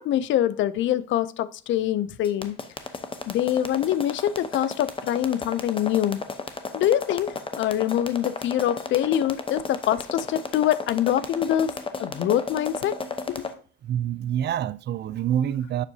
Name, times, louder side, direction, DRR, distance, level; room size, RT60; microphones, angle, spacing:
voice 1, 0.0-2.6 3.3-6.2 6.7-11.7 12.0-13.0 13.3-13.4, left 11 dB, 70° left, 0.5 m, -24 dB
sound 1, 2.2-13.5, left 4 dB, 25° left, 0.8 m, -33 dB
voice 2, 13.8-15.9, right 10 dB, 60° right, 0.4 m, -26 dB
7.3 x 6.2 x 2.7 m
cardioid pair, 90°, 20 cm